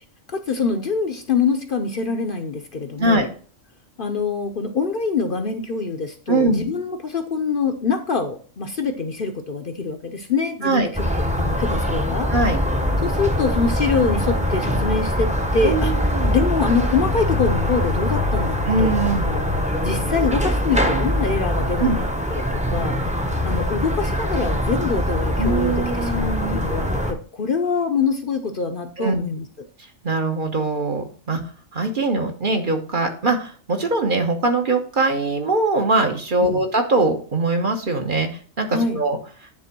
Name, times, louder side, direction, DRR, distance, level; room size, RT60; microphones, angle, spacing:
voice 1, 0.3-3.3 4.0-11.0 11.4-12.3 13.0-15.9 16.3-18.9 19.2-19.4 19.8-22.4 22.7-23.0 23.4-29.5 36.4-36.6 38.7-39.0, left 5 dB, 50° left, 6 dB, 0.8 m, -24 dB
voice 2, 6.3-6.6 10.6-10.9 12.3-12.6 15.6-16.3 18.7-19.2 21.8-22.0 25.4-26.6 29.0-29.2 30.0-31.4 31.7-38.3 38.6-39.2, right 2 dB, 45° right, 4 dB, 1.2 m, -22 dB
sound 1, 10.9-27.1, left 1 dB, 5° right, 0.8 m, -23 dB
9.8 x 3.5 x 6.0 m, 0.42 s
omnidirectional pair, 1.3 m